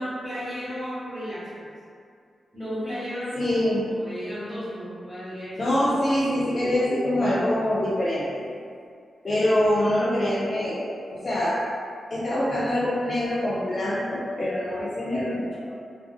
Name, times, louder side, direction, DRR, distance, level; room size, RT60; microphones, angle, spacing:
voice 1, 0.0-1.6 2.5-3.5 3.9-5.7, equal, 5° right, -15 dB, 1.3 m, -33 dB
voice 2, 3.4-3.8 5.6-8.4 9.2-11.6 12.1-15.8, left 1 dB, 50° left, -8 dB, 0.4 m, -24 dB
2.4 x 2.4 x 2.3 m, 2.3 s
supercardioid pair, 45°, 0 cm